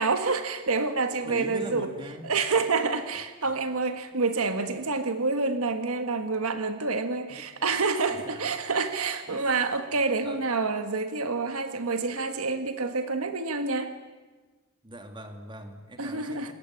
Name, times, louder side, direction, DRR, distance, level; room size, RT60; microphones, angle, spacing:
voice 1, 0.0-1.9 2.2-13.9 16.0-16.5, right 4 dB, 70° right, 8 dB, 1.6 m, -28 dB
voice 2, 1.2-2.3 3.1-3.5 4.1-4.2 7.3-8.7 9.3-9.7 10.2-10.4 14.8-16.5, equal, 20° right, 6 dB, 2.7 m, -42 dB
27.0 x 21.0 x 10.0 m, 1.3 s
head